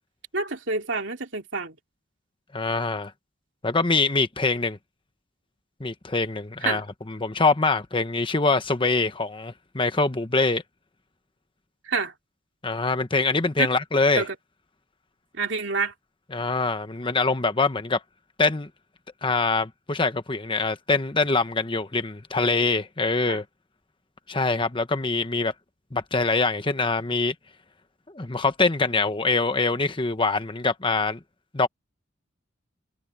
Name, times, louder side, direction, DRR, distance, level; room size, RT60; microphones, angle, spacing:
voice 1, 0.3-1.8 6.6-6.8 11.8-12.1 14.2-14.3 15.3-15.9 23.3-23.4, right 4 dB, 65° right, 3.1 m, -28 dB
voice 2, 2.5-3.1 3.6-4.8 5.8-10.6 12.6-14.2 16.3-18.0 18.4-18.7 19.2-23.4 24.3-25.5 25.9-27.3 28.1-31.2 31.5-31.7, left 3 dB, 25° left, 1.1 m, -24 dB
head